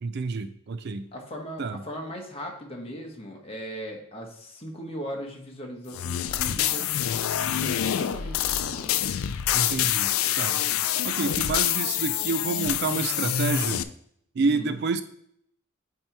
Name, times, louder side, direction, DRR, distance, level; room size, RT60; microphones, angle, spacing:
voice 1, 0.0-1.1 1.6-1.8 9.5-10.6 11.0-13.8 14.3-15.0, right 4 dB, 50° right, 11 dB, 0.4 m, -29 dB
voice 2, 1.1-6.9 7.4-9.0 14.4-14.7, equal, 25° left, 0 dB, 1.2 m, -38 dB
sound 1, 5.9-13.8, left 11 dB, 75° left, 0.4 m, -26 dB
8.7 x 2.9 x 4.5 m, 0.70 s
head